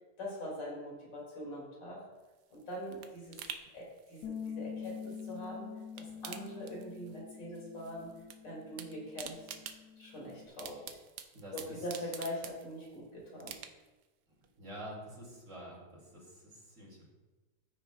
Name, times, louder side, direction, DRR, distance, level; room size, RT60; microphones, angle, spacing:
voice 1, 0.2-2.0 2.5-3.4 3.7-5.7 5.9-8.1 8.4-9.4 10.0-11.0 11.5-13.5, equal, 80° left, -3 dB, 3.2 m, -43 dB
sound 1, 2.2-5.5 5.8-7.3 7.5-8.4 8.6-13.0 13.4-14.0 14.4-14.5, right 8 dB, 75° right, 1.2 m, -48 dB
Bass guitar, 4.2-10.5, left 7 dB, 65° left, 0.9 m, -46 dB
voice 2, 11.3-11.8 14.6-17.0, right 1 dB, 45° right, -4 dB, 2.8 m, -48 dB
14.0 x 6.5 x 2.3 m, 1.2 s
omnidirectional pair, 1.9 m